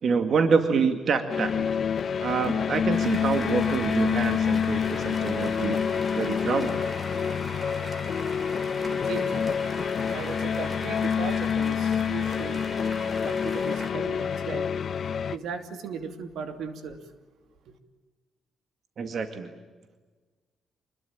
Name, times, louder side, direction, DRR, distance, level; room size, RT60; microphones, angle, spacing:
voice 1, 0.0-1.7 2.2-5.8 6.1-6.8 19.0-19.5, right 5 dB, 50° right, 7 dB, 2.1 m, -26 dB
sound 1, 1.3-15.4, left 7 dB, 45° left, 0.8 m, -27 dB
sound 2, 2.9-13.9, right 2 dB, 25° right, 2.8 m, -41 dB
voice 2, 8.9-9.6 10.1-12.6 13.3-14.7 15.3-17.0 17.7-17.8, right 6 dB, 75° right, 7 dB, 2.7 m, -37 dB
27.0 x 21.0 x 8.8 m, 1.3 s
cardioid pair, 125°, 0 cm